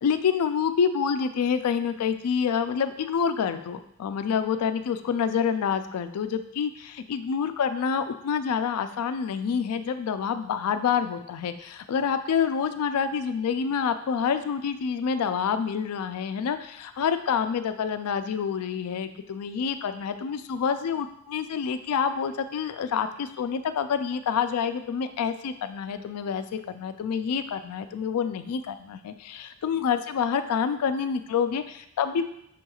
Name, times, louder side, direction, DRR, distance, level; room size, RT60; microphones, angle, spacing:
voice 1, 0.0-32.3, left 7 dB, 85° left, 10 dB, 0.3 m, -27 dB
6.3 x 2.9 x 2.3 m, 0.75 s
head